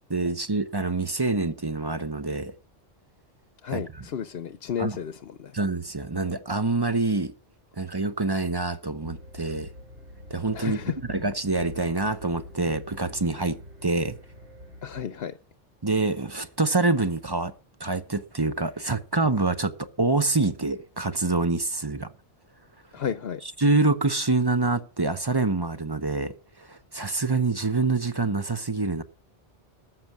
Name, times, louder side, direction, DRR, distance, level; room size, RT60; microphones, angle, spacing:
voice 1, 0.1-2.5 3.7-4.1 4.8-5.0 5.5-7.3 7.8-9.7 10.3-10.8 11.1-14.2 15.8-17.5 17.8-19.7 20.0-22.1 23.4-29.0, right 3 dB, 25° right, 0.8 m, -26 dB
voice 2, 3.6-5.6 10.5-11.0 14.8-15.4 22.9-23.4, left 8 dB, 60° left, 1.0 m, -32 dB
sound 1, 9.0-15.1, left 1 dB, 90° right, 3.7 m, -46 dB
13.5 x 7.5 x 7.3 m
omnidirectional pair, 1.2 m